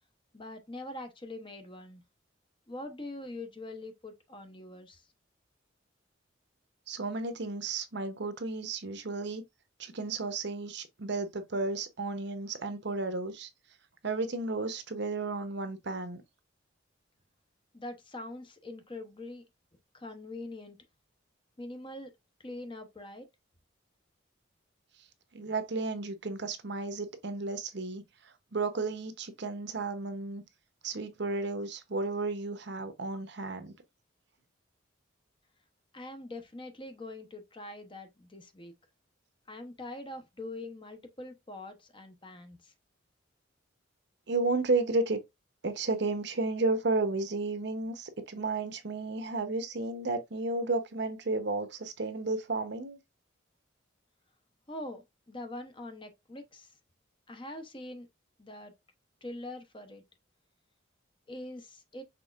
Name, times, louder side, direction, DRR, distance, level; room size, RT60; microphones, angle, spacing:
voice 1, 0.3-2.0 2.7-5.1 17.7-19.4 19.9-20.8 21.6-22.1 22.4-23.3 35.9-38.7 39.5-42.7 54.7-56.7 57.3-58.1 58.4-58.7 59.2-60.0 61.3-62.0, left 1 dB, 25° left, 0.8 m, -43 dB
voice 2, 6.9-9.4 9.8-13.5 14.0-16.2 25.3-28.1 28.5-30.4 30.8-33.7 44.3-45.2 45.6-53.0, right 3 dB, 60° right, 0.8 m, -33 dB
6.0 x 3.5 x 2.4 m
head